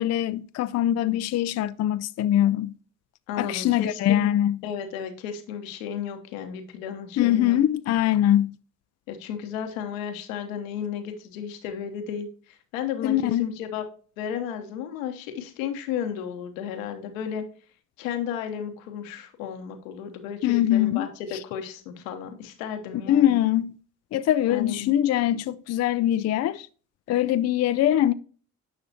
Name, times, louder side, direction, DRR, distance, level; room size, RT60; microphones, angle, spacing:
voice 1, 0.0-2.7 3.4-4.6 7.2-8.6 13.0-13.5 20.4-21.1 23.1-23.8 24.1-26.7 27.1-28.1, left 12 dB, 40° left, 0.4 m, -22 dB
voice 2, 3.3-4.3 4.6-7.6 9.1-13.8 14.2-17.4 18.0-23.4 24.5-24.9, left 8 dB, 80° left, 1.0 m, -33 dB
10.0 x 5.8 x 2.8 m
hypercardioid pair, 40°, 40 cm